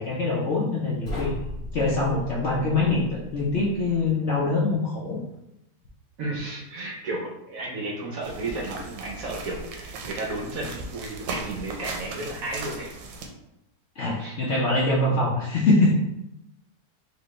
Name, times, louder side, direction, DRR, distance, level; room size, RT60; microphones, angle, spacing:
voice 1, 0.0-1.3 1.7-5.2 14.0-15.9, left 2 dB, 60° left, -5 dB, 0.7 m, -24 dB
sound 1, 1.0-4.1, left 1 dB, 40° left, 1.2 m, -37 dB
voice 2, 6.2-12.9 14.2-14.4, right 2 dB, 65° right, -1 dB, 0.9 m, -33 dB
sound 2, 8.2-13.3, right 3 dB, 90° right, 1.3 m, -37 dB
4.1 x 2.9 x 3.1 m, 0.88 s
omnidirectional pair, 1.9 m